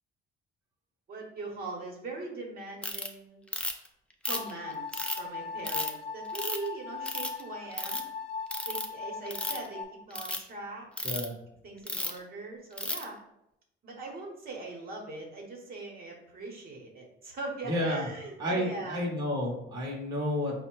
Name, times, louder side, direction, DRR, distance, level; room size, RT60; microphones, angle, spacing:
voice 1, 1.1-3.4 4.2-8.0 8.7-10.9 11.6-13.2 13.8-19.0, right 3 dB, 45° right, -1 dB, 1.0 m, -41 dB
Ratchet pawl, 2.8-3.1 3.5-3.9 4.3-5.2 5.6-5.9 6.4-6.7 7.1-7.4 7.7-8.0 8.5-8.9 9.3-9.7 10.1-10.4 11.0-11.3 11.9-12.2 12.8-13.0, left 2 dB, 5° left, 0.3 m, -33 dB
sound 1, 4.3-9.8, left 5 dB, 35° left, 0.9 m, -39 dB
voice 2, 17.7-18.1 18.4-20.6, left 1 dB, 20° right, -4 dB, 0.9 m, -31 dB
4.8 x 2.1 x 4.5 m, 0.81 s
cardioid pair, 150°, 21 cm